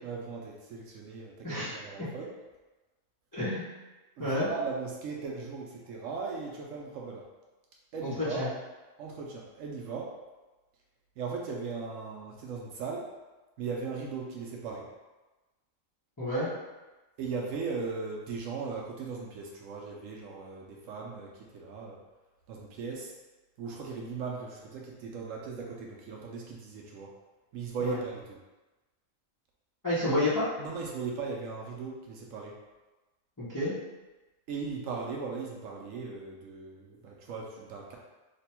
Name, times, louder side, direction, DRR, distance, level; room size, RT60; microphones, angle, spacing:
voice 1, 0.0-2.3 4.2-7.2 7.9-8.5 9.0-10.1 11.2-13.1 13.6-14.9 17.2-22.0 22.5-23.1 23.6-27.1 27.5-28.4 30.1-30.2 30.6-32.6 34.5-38.0, right 4 dB, 75° right, -1 dB, 0.9 m, -38 dB
voice 2, 1.4-2.1 3.3-3.7 4.2-4.5 8.0-8.5 16.2-16.5 27.8-28.0 29.8-30.5 33.4-33.7, left 1 dB, 20° left, -11 dB, 0.8 m, -30 dB
3.3 x 2.2 x 4.2 m, 1.1 s
omnidirectional pair, 1.4 m